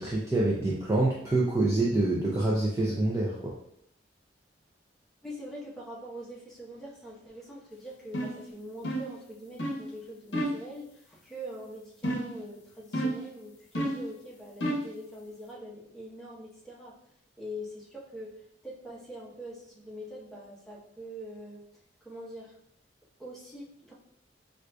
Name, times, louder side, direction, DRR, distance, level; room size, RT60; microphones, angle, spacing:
voice 1, 0.0-3.5, right 2 dB, 15° right, -5 dB, 0.4 m, -26 dB
voice 2, 5.2-17.0 17.4-21.7 22.0-22.6 23.2-23.9, equal, ahead, -6 dB, 0.8 m, -43 dB
sound 1, 8.1-8.4 8.8-9.2 9.6-9.9 10.3-10.7 12.0-12.4 12.9-13.3 13.7-14.1 14.6-14.9, right 1 dB, 80° left, 0.6 m, -31 dB
4.7 x 2.5 x 2.2 m, 0.72 s
head